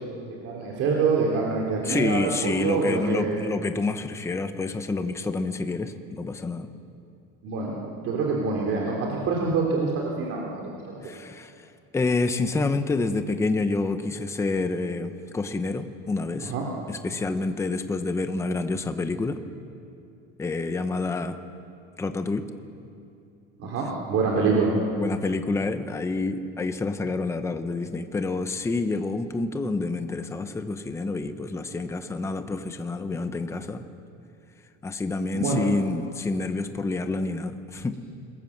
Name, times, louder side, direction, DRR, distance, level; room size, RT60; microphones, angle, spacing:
voice 1, 0.3-3.4 7.4-11.2 16.4-16.6 23.6-24.8 35.3-35.6, right 4 dB, 45° right, -2 dB, 3.4 m, -26 dB
voice 2, 1.8-6.7 11.0-11.7 11.9-16.5 16.9-19.4 20.4-21.4 22.0-22.5 24.9-33.8 34.8-38.0, left 3 dB, 10° left, 8 dB, 0.8 m, -28 dB
27.0 x 21.5 x 7.3 m, 2.6 s
cardioid pair, 170°, 32 cm